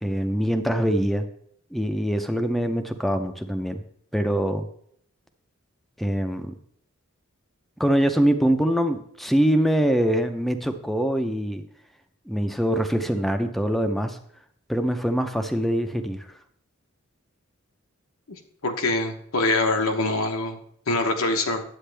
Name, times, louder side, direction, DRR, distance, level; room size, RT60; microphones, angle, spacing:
voice 1, 0.0-1.2 1.7-3.8 4.1-4.7 6.0-6.5 7.8-11.6 12.3-14.2 14.7-16.3, equal, ahead, 7 dB, 0.5 m, -23 dB
voice 2, 18.6-20.6 20.9-21.6, left 2 dB, 85° left, 4 dB, 1.0 m, -24 dB
10.0 x 8.3 x 3.4 m, 0.66 s
head